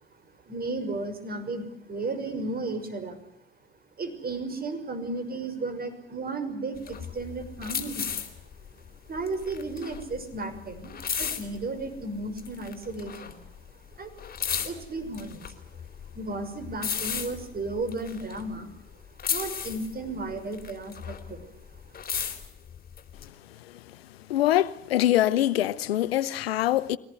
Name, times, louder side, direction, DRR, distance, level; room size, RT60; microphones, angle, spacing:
voice 1, 0.2-3.2 4.0-8.2 9.1-10.9 11.2-13.4 14.0-14.1 14.6-15.6 16.1-18.7 19.3-22.2, right 2 dB, 30° right, 6.3 m, -34 dB
sound 1, 6.8-12.0 12.4-13.7 13.9-18.9 19.2-21.4 21.7-23.2, left 7 dB, 30° left, 3.9 m, -34 dB
voice 2, 24.3-27.0, left 13 dB, 85° left, 1.0 m, -24 dB
24.0 x 18.5 x 9.7 m
hypercardioid pair, 75°, 30 cm